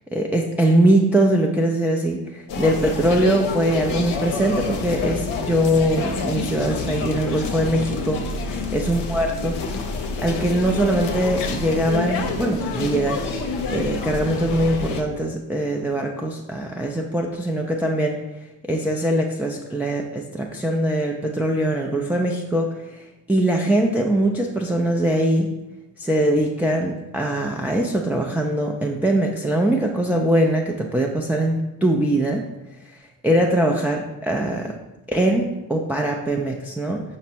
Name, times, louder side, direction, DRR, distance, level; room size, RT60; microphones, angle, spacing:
voice 1, 0.1-9.6 10.2-13.2 13.7-18.2 18.7-25.5 26.0-32.4 32.9-33.0 33.2-34.7 35.1-37.0, right 1 dB, 5° right, 0 dB, 0.4 m, -22 dB
sound 1, 2.5-15.0, left 4 dB, 70° left, 0.6 m, -28 dB
5.0 x 2.1 x 4.3 m, 1.0 s
hypercardioid pair, 40°, 43 cm